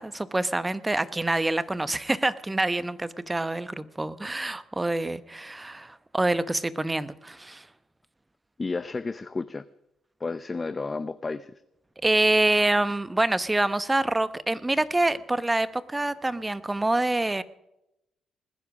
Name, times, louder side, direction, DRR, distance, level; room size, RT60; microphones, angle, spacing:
voice 1, 0.0-7.7 12.0-17.4, right 2 dB, 15° right, 16 dB, 0.9 m, -26 dB
voice 2, 8.6-9.7 10.2-11.5, left 3 dB, 25° left, 14 dB, 0.6 m, -32 dB
20.0 x 10.0 x 6.3 m, 0.85 s
cardioid pair, 90°, 0 cm